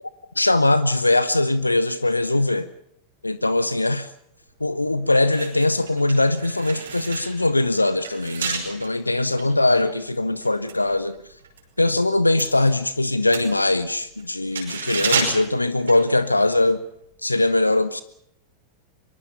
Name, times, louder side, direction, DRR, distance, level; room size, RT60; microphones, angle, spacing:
voice 1, 0.4-2.7 3.2-4.1 4.6-11.1 11.8-16.8 17.2-18.0, left 2 dB, 85° left, 0.9 m, -21 dB
sound 1, 4.5-4.6 5.1-11.7 12.0-16.6 16.9-17.1, right 5 dB, 70° right, 5.4 m, -31 dB
24.0 x 23.5 x 5.7 m
figure-of-eight pair, 90°, 0 cm